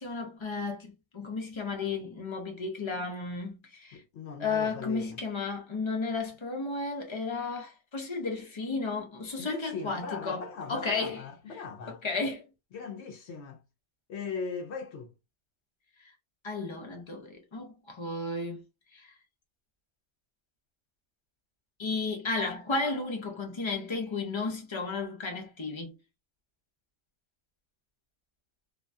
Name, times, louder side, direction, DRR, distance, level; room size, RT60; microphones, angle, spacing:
voice 1, 0.0-4.0 4.4-10.4 10.7-11.2 11.9-12.4 16.4-18.6 18.9-19.1 21.8-25.9, left 3 dB, 40° left, 0.4 m, -33 dB
voice 2, 3.9-5.2 9.4-12.0 12.7-13.6 14.1-15.1, left 5 dB, 65° left, 0.7 m, -39 dB
2.7 x 2.2 x 2.5 m
omnidirectional pair, 1.5 m